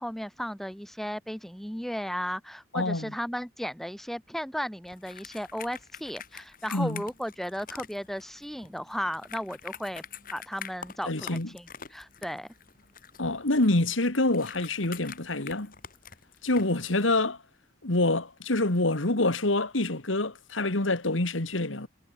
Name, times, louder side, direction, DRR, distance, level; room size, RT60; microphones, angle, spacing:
voice 1, 0.0-10.0 10.3-12.5, equal, ahead, 2.0 m, -35 dB
voice 2, 2.7-3.1 6.7-7.0 11.0-11.5 13.2-15.7 16.4-17.4 17.8-21.9, left 2 dB, 85° left, 2.5 m, -26 dB
sound 1, 4.8-17.2, left 7 dB, 45° left, 3.5 m, -46 dB
head